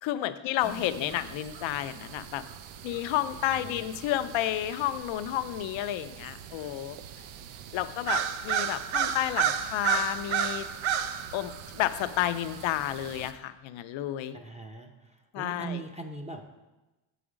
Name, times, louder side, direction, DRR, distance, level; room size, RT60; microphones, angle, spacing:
voice 1, 0.0-2.4 2.8-7.0 7.7-10.7 11.3-14.4 15.3-15.8, left 13 dB, 75° left, 12 dB, 0.6 m, -31 dB
voice 2, 0.6-1.2 3.5-3.9 14.3-16.4, right 4 dB, 15° right, 2 dB, 0.6 m, -41 dB
sound 1, 0.6-13.3, right 8 dB, 75° right, 0.6 m, -34 dB
7.9 x 5.0 x 5.0 m, 1.1 s
cardioid pair, 115°, 48 cm